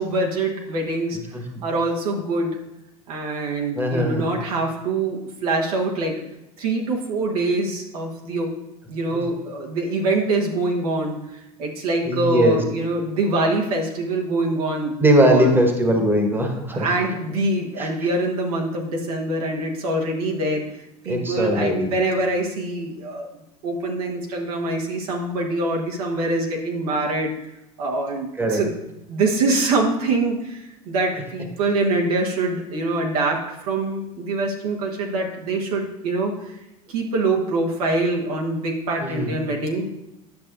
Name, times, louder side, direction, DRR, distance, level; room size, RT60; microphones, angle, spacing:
voice 1, 0.0-1.2 1.6-2.6 3.1-6.1 6.6-8.5 8.9-14.9 15.2-15.6 16.7-20.6 21.0-23.3 23.6-27.3 27.8-28.7 29.1-36.5 36.9-39.9, right 2 dB, 75° right, 0 dB, 1.3 m, -24 dB
voice 2, 3.8-4.3 12.0-12.6 15.0-16.9 17.8-17.9 21.1-21.9 28.4-28.6 39.0-39.4, right 1 dB, 10° right, 3 dB, 1.3 m, -20 dB
10.0 x 6.5 x 2.6 m, 0.90 s
hypercardioid pair, 75°, 20 cm